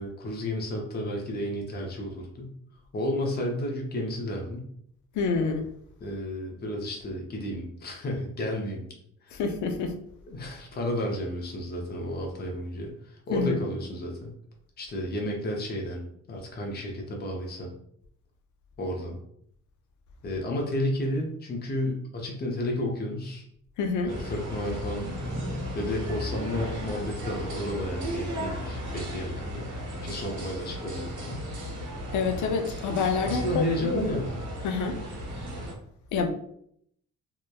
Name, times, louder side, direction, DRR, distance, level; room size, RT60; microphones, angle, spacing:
voice 1, 0.0-2.5 2.9-4.7 6.0-8.8 9.3-9.4 10.3-14.3 14.8-17.7 18.8-19.2 20.2-23.4 24.1-25.1 25.7-29.7 30.0-31.4 33.2-34.3, left 1 dB, 35° left, 0 dB, 0.6 m, -32 dB
voice 2, 5.1-5.7 9.3-9.9 13.3-13.6 23.8-24.1 32.1-34.1 34.6-35.0 36.1-36.3, left 5 dB, 75° left, 6 dB, 0.5 m, -27 dB
sound 1, 24.1-35.7, equal, 70° right, 1.2 m, -35 dB
3.0 x 2.1 x 2.2 m, 0.69 s
cardioid pair, 90°, 30 cm